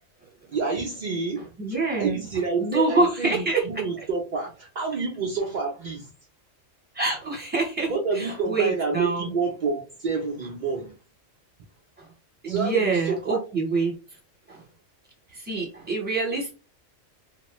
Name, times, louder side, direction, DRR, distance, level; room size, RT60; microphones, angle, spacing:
voice 1, 0.5-1.5 2.0-6.1 7.9-11.0 12.5-13.4, right 4 dB, 70° right, 0.4 m, -28 dB
voice 2, 1.6-2.3 2.6-3.8 6.9-9.3 12.0-12.1 12.4-14.0 14.5-14.6 15.3-16.5, right 4 dB, 10° right, 1.0 m, -26 dB
2.9 x 2.0 x 3.0 m
omnidirectional pair, 1.3 m